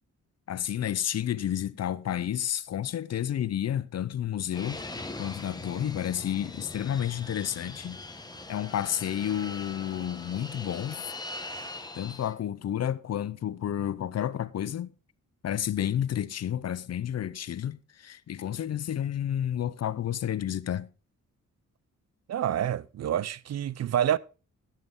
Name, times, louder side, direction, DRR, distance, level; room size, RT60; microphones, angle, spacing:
voice 1, 0.5-4.8 5.2-8.0 8.5-11.0 11.9-14.9 15.4-20.9, left 10 dB, 55° left, 0.6 m, -31 dB
Fixed-wing aircraft airplane, 4.5-12.3, left 2 dB, 15° left, 0.9 m, -41 dB
voice 2, 22.3-24.2, right 10 dB, 55° right, 0.5 m, -27 dB
15.5 x 7.5 x 3.7 m
wide cardioid pair, 160°, 31 cm